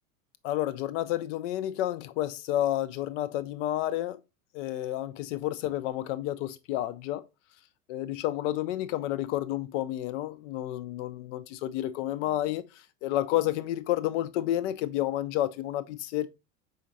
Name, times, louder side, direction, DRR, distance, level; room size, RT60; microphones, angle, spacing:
voice 1, 0.4-4.2 4.5-7.2 7.9-16.3, left 13 dB, 55° left, 0.6 m, -30 dB
5.0 x 3.8 x 2.6 m
hypercardioid pair, 85°, 45 cm